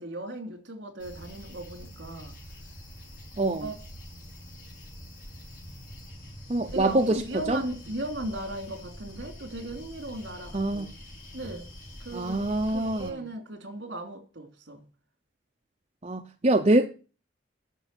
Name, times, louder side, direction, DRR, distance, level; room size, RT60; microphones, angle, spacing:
voice 1, 0.0-2.3 3.6-3.7 6.7-10.9 11.3-11.6 12.0-14.8, right 1 dB, 65° right, 3.1 m, -37 dB
sound 1, 1.0-13.1, equal, 50° left, 5.3 m, -45 dB
voice 2, 3.4-3.7 6.5-7.2 7.5-7.6 10.5-10.9 12.1-13.1 16.0-16.9, right 2 dB, 30° right, 0.7 m, -24 dB
10.0 x 6.8 x 9.1 m
head